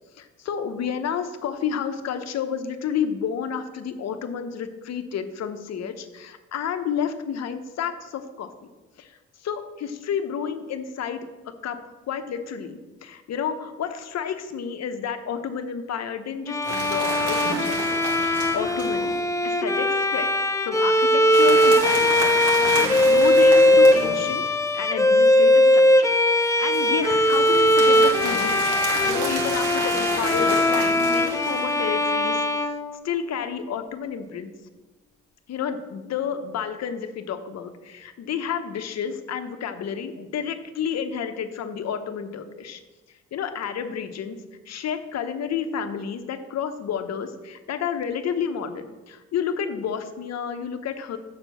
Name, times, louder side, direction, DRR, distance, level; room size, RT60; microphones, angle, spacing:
voice 1, 0.2-8.5 9.0-9.1 9.4-11.3 11.6-11.8 12.1-18.0 18.3-19.1 19.4-20.3 20.6-22.3 22.5-24.4 24.7-32.7 33.0-34.5 35.5-42.8 43.3-44.4 44.7-51.2, left 7 dB, 60° left, 8 dB, 0.9 m, -30 dB
Bowed string instrument, 16.5-33.5, left 1 dB, 10° left, 0.5 m, -20 dB
sound 1, 16.6-19.2 21.3-24.5 26.7-32.1, right 3 dB, 75° right, 1.8 m, -31 dB
6.9 x 4.4 x 6.8 m, 1.2 s
cardioid pair, 90°, 30 cm